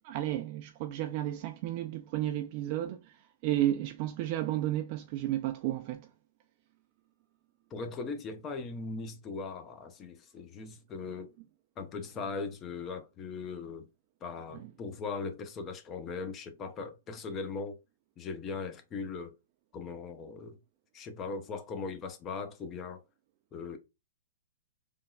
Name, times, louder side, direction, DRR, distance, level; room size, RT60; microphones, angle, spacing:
voice 1, 0.0-6.1, right 13 dB, 45° right, 0.3 m, -32 dB
voice 2, 7.7-11.3 11.8-13.9 14.2-17.8 18.2-19.3 19.7-20.6 20.9-23.0 23.5-23.8, left 4 dB, 25° left, 0.5 m, -39 dB
3.4 x 2.2 x 2.2 m
hypercardioid pair, 125°, 0 cm